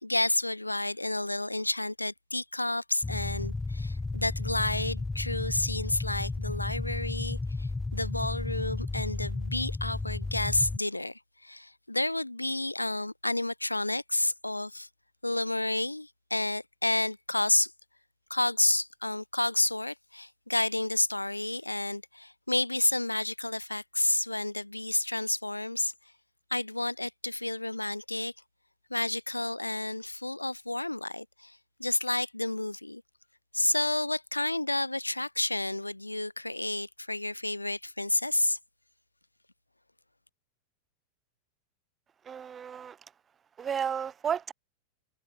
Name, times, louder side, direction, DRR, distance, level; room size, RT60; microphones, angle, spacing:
voice 1, 0.0-14.9 15.2-17.7 18.3-25.9 26.5-28.3 28.9-33.0 33.5-38.6, left 2 dB, 85° left, 1.2 m, -30 dB
sound 1, 3.0-10.8, left 3 dB, 10° left, 1.3 m, -33 dB
voice 2, 42.3-43.0 43.6-44.5, right 7 dB, 20° right, 1.1 m, -32 dB
figure-of-eight pair, 90°, 0 cm